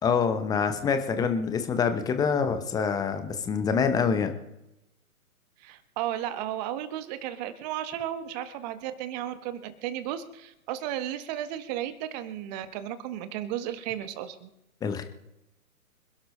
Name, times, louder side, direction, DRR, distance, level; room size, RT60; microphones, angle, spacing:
voice 1, 0.0-4.3 14.8-15.0, left 6 dB, 10° left, 9 dB, 0.9 m, -26 dB
voice 2, 5.6-14.5, right 11 dB, 25° right, 11 dB, 1.4 m, -34 dB
26.5 x 11.5 x 3.2 m, 0.87 s
figure-of-eight pair, 130°, 45 cm